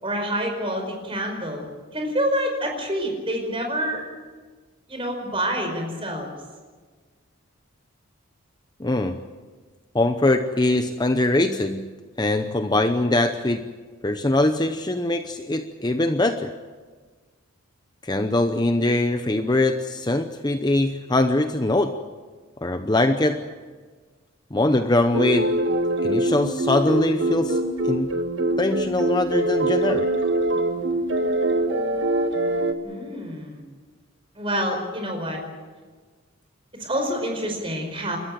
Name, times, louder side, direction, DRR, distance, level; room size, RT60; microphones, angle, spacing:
voice 1, 0.0-1.6 1.9-4.1 4.9-6.3 32.8-33.6 34.4-35.4 36.8-38.2, equal, 25° right, 3 dB, 5.1 m, -27 dB
voice 2, 8.8-9.2 9.9-11.9 12.2-13.7 14.0-16.5 18.0-22.0 22.6-23.4 24.5-25.5 26.0-28.1 28.6-30.1, left 2 dB, 20° left, 7 dB, 0.7 m, -22 dB
sound 1, 25.1-32.7, right 1 dB, 60° right, 1.7 m, -23 dB
29.0 x 13.5 x 9.1 m, 1.4 s
head